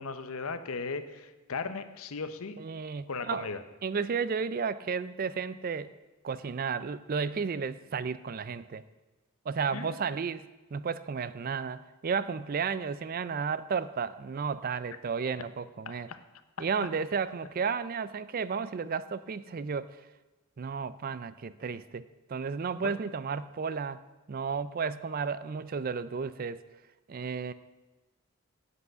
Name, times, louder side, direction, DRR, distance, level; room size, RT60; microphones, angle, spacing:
voice 1, 0.0-2.6 3.1-3.6 9.7-10.2 15.9-16.2 22.8-22.9, left 4 dB, 70° left, 11 dB, 0.8 m, -37 dB
voice 2, 2.6-3.5 3.8-5.9 6.2-8.8 9.5-16.1 16.6-20.0 20.6-24.0 24.3-26.6 27.1-27.5, right 5 dB, 40° right, 16 dB, 0.4 m, -33 dB
8.2 x 7.8 x 8.0 m, 1.2 s
head